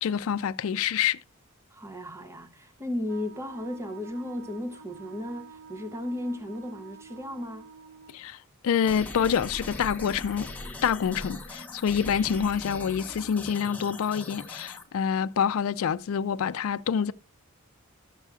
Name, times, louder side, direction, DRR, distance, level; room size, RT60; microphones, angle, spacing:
voice 1, 0.0-1.2 8.1-8.4 8.6-10.5 10.8-17.1, left 7 dB, 70° left, 0.3 m, -27 dB
voice 2, 1.7-7.7, left 1 dB, 10° right, 0.6 m, -35 dB
Wind instrument woodwind instrument, 3.0-8.2, right 5 dB, 70° right, 1.2 m, -48 dB
sound 1, 8.8-14.8, left 2 dB, 5° left, 0.9 m, -40 dB
12.5 x 6.8 x 2.3 m
head